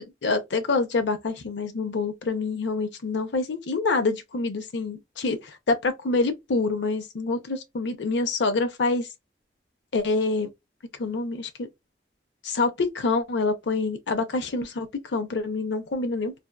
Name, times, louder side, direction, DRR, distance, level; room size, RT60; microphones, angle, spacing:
voice 1, 0.0-9.1 9.9-10.5 11.0-11.7 12.4-16.3, left 3 dB, 80° left, 0.6 m, -26 dB
2.6 x 2.3 x 2.2 m
head